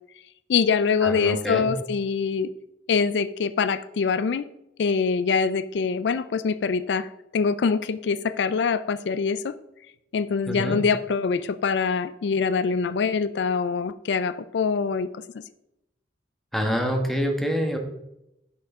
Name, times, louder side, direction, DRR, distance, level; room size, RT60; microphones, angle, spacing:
voice 1, 0.5-2.5 2.9-4.5 4.8-7.1 7.3-9.5 10.1-15.4, left 5 dB, 70° left, 14 dB, 0.4 m, -24 dB
voice 2, 1.0-1.7 10.5-10.8 16.5-17.8, equal, ahead, 2 dB, 1.3 m, -26 dB
9.7 x 6.6 x 3.6 m, 0.85 s
head